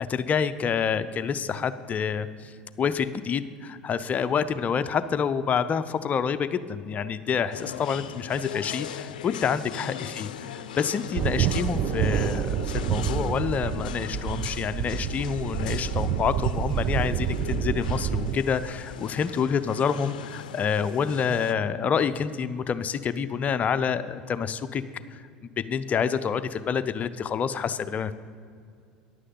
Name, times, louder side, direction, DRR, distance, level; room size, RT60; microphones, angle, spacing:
voice 1, 0.0-24.8 25.6-28.1, left 7 dB, 35° left, 12 dB, 0.6 m, -28 dB
sound 1, 7.5-21.5, left 9 dB, 80° left, 0.5 m, -40 dB
sound 2, 11.1-18.4, right 9 dB, 50° right, 0.5 m, -28 dB
11.0 x 6.4 x 7.7 m, 2.2 s
hypercardioid pair, 80°, 4 cm